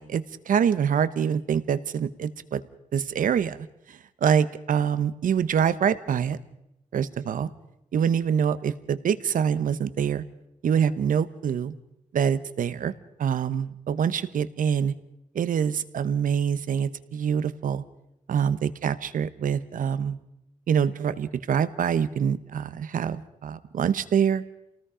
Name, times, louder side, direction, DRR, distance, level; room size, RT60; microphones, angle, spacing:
voice 1, 0.0-2.6 2.9-3.7 4.2-6.4 6.9-7.5 7.9-10.2 10.6-11.7 12.1-12.9 13.2-14.9 15.3-17.8 18.3-20.2 20.7-24.4, right 7 dB, 90° right, 14 dB, 1.0 m, -25 dB
28.0 x 19.0 x 5.1 m, 0.82 s
wide cardioid pair, 105°, 13 cm